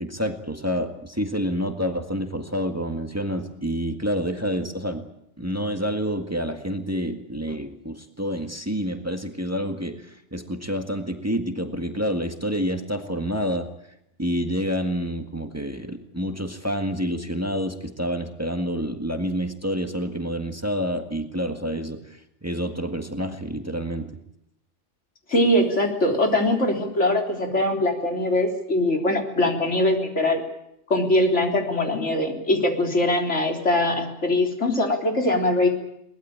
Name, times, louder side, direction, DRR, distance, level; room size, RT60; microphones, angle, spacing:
voice 1, 0.0-5.0 5.4-13.7 14.2-24.1, equal, 15° right, 5 dB, 1.8 m, -28 dB
voice 2, 25.3-30.4 30.9-35.7, left 1 dB, 80° left, 2 dB, 4.0 m, -22 dB
22.5 x 19.5 x 8.9 m, 0.79 s
omnidirectional pair, 1.2 m